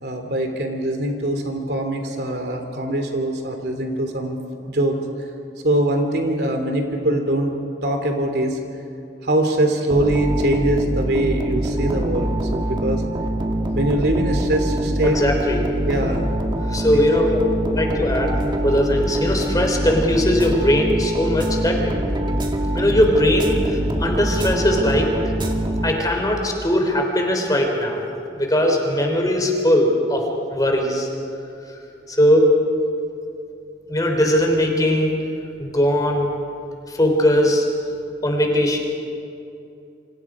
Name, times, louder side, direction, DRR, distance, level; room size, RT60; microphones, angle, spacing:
voice 1, 0.0-4.4 4.6-5.0 5.6-7.5 7.8-8.6 9.2-13.0 13.7-15.2 15.9-16.3 16.9-17.0, right 1 dB, 65° right, 4 dB, 3.0 m, -22 dB
sound 1, 9.9-26.3, right 1 dB, 25° right, 2.0 m, -24 dB
voice 2, 15.0-15.7 16.7-17.4 17.6-21.9 22.7-25.1 25.8-28.0 28.4-31.1 32.1-32.5 33.9-35.1 35.6-36.3 36.9-37.7 38.2-38.8, left 1 dB, 20° left, 2 dB, 3.6 m, -19 dB
28.0 x 26.0 x 5.0 m, 2.6 s
head